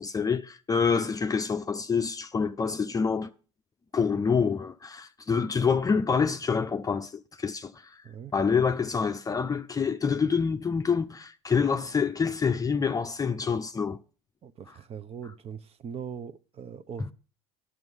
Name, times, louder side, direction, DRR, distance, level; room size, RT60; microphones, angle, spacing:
voice 1, 0.0-3.3 3.9-8.0 8.3-14.0 14.7-14.8 17.0-17.1, left 5 dB, 25° left, 0.6 m, -27 dB
voice 2, 14.4-17.1, right 7 dB, 40° right, 0.9 m, -40 dB
11.5 x 6.1 x 7.2 m
hypercardioid pair, 75°, 15 cm